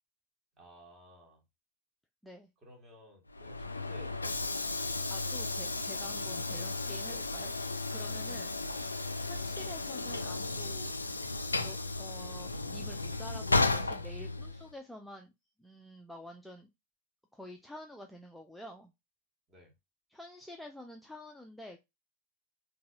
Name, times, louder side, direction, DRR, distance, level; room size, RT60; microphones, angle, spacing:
voice 1, 0.6-1.4 2.6-4.8 6.5-6.7 7.0-7.2 19.5-19.7, equal, 20° right, 1.4 m, -55 dB
Train / Sliding door, 3.3-14.7, left 3 dB, 80° left, 0.3 m, -34 dB
voice 2, 5.1-7.5 7.9-8.6 9.2-11.2 11.5-15.3 15.6-16.7 17.3-18.9 20.1-21.8, left 1 dB, ahead, 0.4 m, -49 dB
3.9 x 2.6 x 2.4 m
figure-of-eight pair, 90°, 0 cm